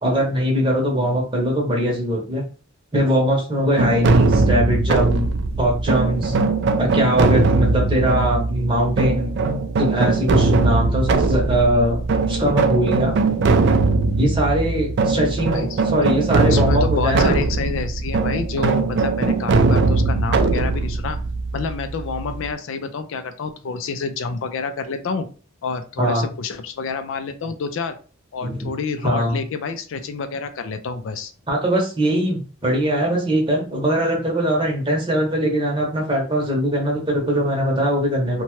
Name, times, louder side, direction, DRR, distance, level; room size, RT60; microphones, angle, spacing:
voice 1, 0.0-2.4 2.9-5.3 5.6-6.3 6.8-9.3 9.8-12.0 12.3-13.2 14.2-17.4 26.0-26.3 28.4-28.7 29.0-29.4 31.5-38.4, equal, 25° right, -1 dB, 0.8 m, -21 dB
sound 1, 3.8-22.5, right 3 dB, 55° right, 0.3 m, -20 dB
voice 2, 16.5-21.2 21.5-25.3 25.6-27.9 28.3-31.3, left 4 dB, 65° left, 8 dB, 0.4 m, -28 dB
2.8 x 2.2 x 3.0 m, 0.37 s
head